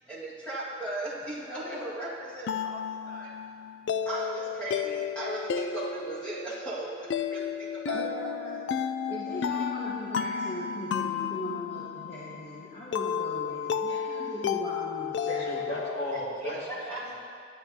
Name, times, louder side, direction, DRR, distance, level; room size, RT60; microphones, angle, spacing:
voice 1, 0.1-3.3 4.0-8.2 16.4-16.5 16.8-17.1, right 1 dB, 10° left, -10 dB, 1.9 m, -37 dB
sound 1, 1.6-16.4, left 7 dB, 90° left, 0.3 m, -33 dB
voice 2, 7.9-8.6 9.1-15.7, equal, 35° left, -8 dB, 1.2 m, -39 dB
voice 3, 15.3-17.1, equal, 65° left, -6 dB, 2.1 m, -36 dB
12.5 x 8.9 x 2.8 m, 2.2 s
head